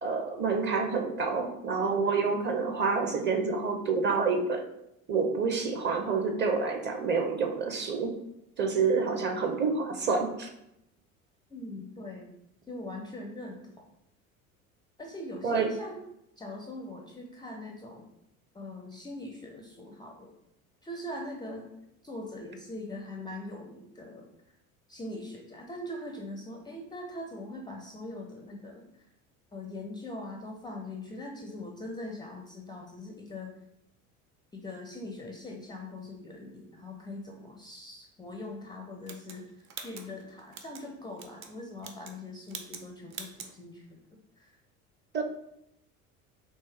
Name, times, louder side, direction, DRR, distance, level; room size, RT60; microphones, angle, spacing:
voice 1, 0.0-4.6 5.1-8.2 8.6-10.5 15.4-15.7 45.1-45.2, right 4 dB, 25° right, 4 dB, 0.7 m, -28 dB
voice 2, 11.5-12.3 12.7-13.6 15.0-16.0 16.4-18.1 18.5-20.3 20.8-21.7 22.0-24.3 24.9-29.1 29.5-33.5 34.5-44.0 44.4-44.5, left 1 dB, 10° left, 2 dB, 0.4 m, -42 dB
sound 1, 39.1-40.8 41.2-41.5 41.8-42.2 42.5-42.8 43.1-43.5, right 6 dB, 75° right, 0.7 m, -43 dB
4.3 x 3.1 x 3.4 m, 0.80 s
figure-of-eight pair, 65°, 42 cm